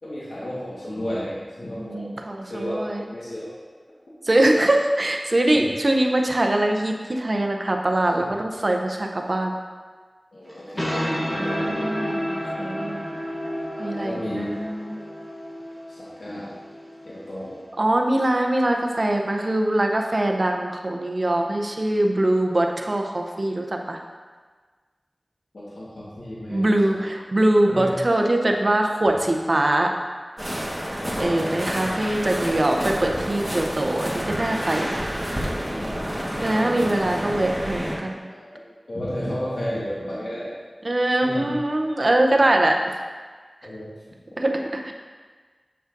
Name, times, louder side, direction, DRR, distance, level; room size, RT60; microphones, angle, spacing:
voice 1, 0.0-2.1 2.4-3.5 5.5-5.7 8.1-8.3 10.3-11.7 13.8-14.5 15.9-16.5 17.0-17.6 25.5-26.7 27.7-28.0 28.4-28.5 31.0-31.7 35.8-36.8 38.3-38.5 38.9-40.5 41.2-41.4 41.9-42.0 43.6-43.9 44.5-44.6, equal, 85° left, -9 dB, 1.4 m, -33 dB
voice 2, 1.8-3.0 4.2-9.5 11.3-13.1 13.8-15.0 17.8-24.0 26.5-29.9 31.2-35.1 36.4-38.3 40.8-42.8 44.4-44.9, right 1 dB, 55° right, 2 dB, 0.6 m, -22 dB
sound 1, 10.5-17.7, equal, 25° left, 1.3 m, -31 dB
sound 2, 30.4-38.0, equal, 15° right, 1.4 m, -29 dB
7.8 x 6.4 x 2.6 m, 1.5 s
wide cardioid pair, 50°, 0 cm